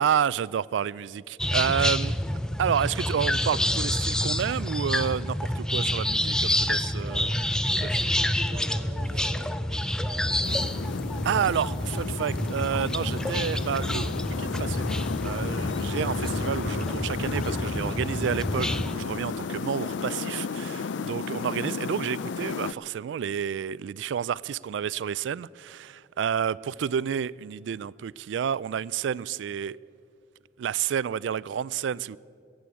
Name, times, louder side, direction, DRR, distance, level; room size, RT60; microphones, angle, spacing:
voice 1, 0.0-2.2 2.6-7.3 7.8-8.0 11.2-14.8 15.2-29.8 30.6-32.2, right 8 dB, 80° right, 0.3 m, -30 dB
sound 1, 1.4-19.0, left 1 dB, 5° left, 0.3 m, -28 dB
voice 2, 7.7-10.9, right 1 dB, 40° right, 2.0 m, -44 dB
sound 2, 10.4-22.7, left 5 dB, 80° left, 0.4 m, -33 dB
15.5 x 7.7 x 9.8 m
head